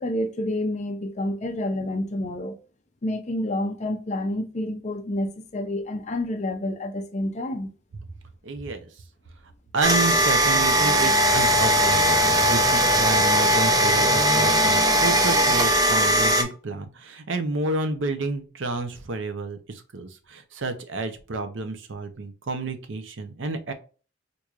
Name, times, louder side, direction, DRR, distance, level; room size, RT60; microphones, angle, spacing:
voice 1, 0.0-2.5 3.0-7.7, left 1 dB, 35° left, 0.5 m, -28 dB
voice 2, 8.4-8.9 9.7-23.7, right 3 dB, 70° right, 0.6 m, -30 dB
sound 1, 9.8-16.4, equal, 20° right, 0.4 m, -19 dB
4.5 x 2.6 x 2.3 m
head